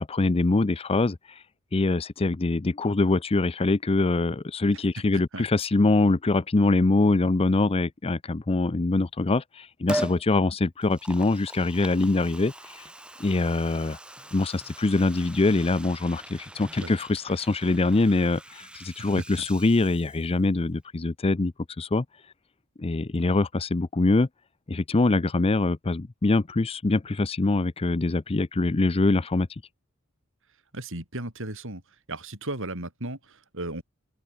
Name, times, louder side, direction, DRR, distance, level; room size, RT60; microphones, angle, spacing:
voice 1, 0.0-1.4 1.7-12.9 13.2-14.0 14.3-22.0 22.8-24.3 24.7-29.5, left 2 dB, 25° left, 0.5 m, -24 dB
voice 2, 5.1-5.4 16.8-16.9 19.0-19.2 30.7-31.8 32.1-33.8, right 1 dB, 60° right, 6.9 m, -35 dB
Liquid, 9.9-10.2 10.8-20.5 20.8-20.9, right 1 dB, 5° right, 0.9 m, -40 dB
open air
head